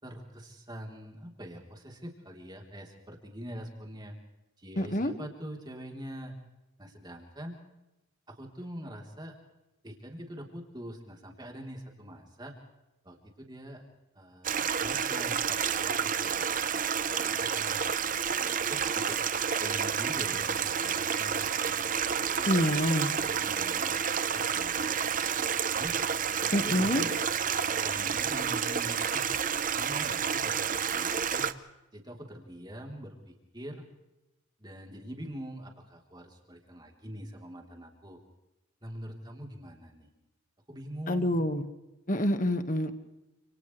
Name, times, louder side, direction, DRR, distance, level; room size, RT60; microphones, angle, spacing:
voice 1, 0.0-4.1 4.6-6.4 6.8-7.6 8.3-9.4 9.8-12.6 13.0-13.8 14.1-16.5 17.1-18.0 18.4-19.2 19.6-21.8 22.3-22.8 23.2-24.0 24.3-24.9 25.3-26.0 26.3-27.2 27.8-29.2 29.7-31.5 31.9-33.9 34.6-38.2 38.8-40.1 40.7-41.4, equal, 20° right, 1 dB, 3.6 m, -44 dB
voice 2, 4.8-5.1 22.5-23.1 26.5-27.0 41.1-41.6 42.1-42.9, left 1 dB, 40° left, 8 dB, 1.7 m, -27 dB
Stream, 14.4-31.5, right 7 dB, 40° right, 0.8 m, -30 dB
30.0 x 28.0 x 3.3 m, 0.97 s
head